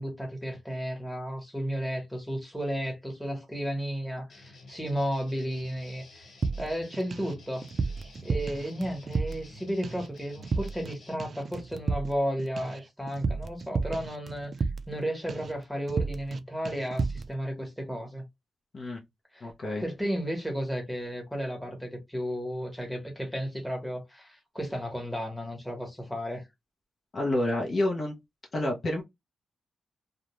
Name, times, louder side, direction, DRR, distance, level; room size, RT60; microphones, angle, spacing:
voice 1, 0.0-6.3 6.6-7.6 8.2-14.5 14.9-18.2 19.3-19.5 19.8-26.4, equal, 5° left, 1.1 m, -33 dB
sound 1, 4.3-11.1, left 1 dB, 65° left, 1.3 m, -52 dB
sound 2, 6.4-7.3 7.6-9.6 9.8-10.1 10.4-10.9 11.2-15.0 15.3-15.6 15.9-16.4 16.7-17.3, right 4 dB, 50° right, 0.3 m, -32 dB
voice 2, 19.4-19.8 27.1-28.1 28.5-29.0, left 1 dB, 50° left, 0.7 m, -28 dB
2.4 x 2.1 x 3.0 m
cardioid pair, 100°, 0 cm